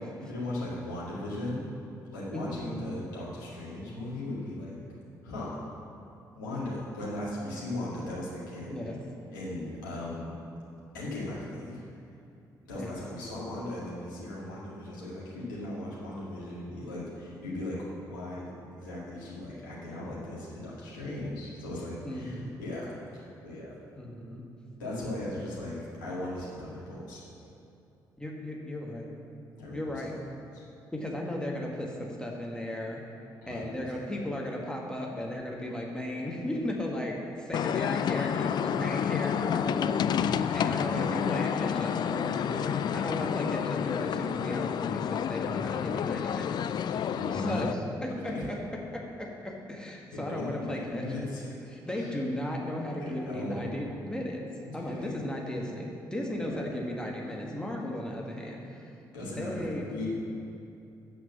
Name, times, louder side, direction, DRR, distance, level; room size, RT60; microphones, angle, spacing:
voice 1, 0.2-1.6 2.1-4.8 5.2-5.6 6.4-8.8 9.3-10.4 10.9-11.8 12.7-23.7 24.8-25.8 26.0-27.2 29.6-30.0 33.4-33.7 40.1-41.1 42.3-42.8 47.0-47.6 48.3-48.5 50.1-51.5 51.9-52.1 53.0-53.7 54.7-55.1 56.4-56.6 59.1-60.1, left 1 dB, 75° left, -7 dB, 2.1 m, -38 dB
voice 2, 2.3-2.7 8.6-9.0 12.7-12.9 22.0-22.6 24.0-24.4 24.8-25.2 28.2-29.1 29.7-30.1 30.9-33.0 33.5-42.4 42.9-48.3 48.9-51.1 51.7-54.4 54.7-58.9 59.3-60.1, left 1 dB, 10° left, -2 dB, 1.8 m, -36 dB
sound 1, 37.5-47.7, left 8 dB, 45° left, 0.3 m, -29 dB
8.1 x 6.2 x 7.3 m, 2.7 s
figure-of-eight pair, 40°, 10 cm